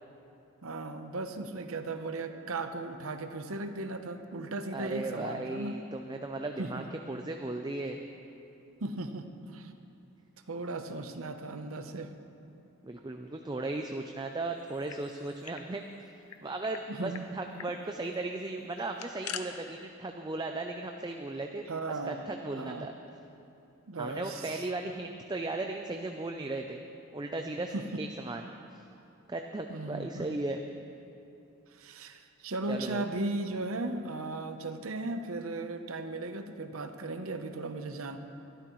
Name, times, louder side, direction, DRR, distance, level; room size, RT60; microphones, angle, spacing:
voice 1, 0.6-5.8 6.6-6.9 8.8-9.7 10.5-12.1 16.9-17.3 21.7-22.2 22.5-22.9 23.9-24.7 27.7-27.8 29.7-30.3 31.7-38.2, right 2 dB, 70° right, 8 dB, 0.8 m, -37 dB
voice 2, 4.7-8.0 12.8-15.8 16.4-21.6 22.0-22.9 24.0-26.9 27.1-28.4 28.7-28.8 29.3-30.6 32.7-33.0, right 2 dB, 20° right, 4 dB, 0.4 m, -36 dB
sound 1, 14.6-15.7 15.9-16.0 16.3-16.8 17.1-17.3 17.6-17.8 18.7-19.4, left 9 dB, 85° left, 0.7 m, -43 dB
23.0 x 12.5 x 3.1 m, 2.8 s
head